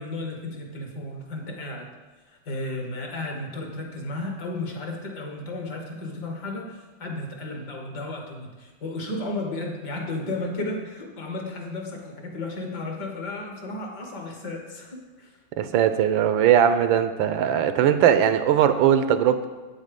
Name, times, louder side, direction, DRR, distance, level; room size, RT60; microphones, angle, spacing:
voice 1, 0.0-1.9 2.3-15.3, left 2 dB, 60° left, 2 dB, 1.9 m, -33 dB
voice 2, 15.6-19.5, right 9 dB, 85° right, 10 dB, 1.4 m, -20 dB
8.2 x 7.3 x 5.2 m, 1.3 s
omnidirectional pair, 2.1 m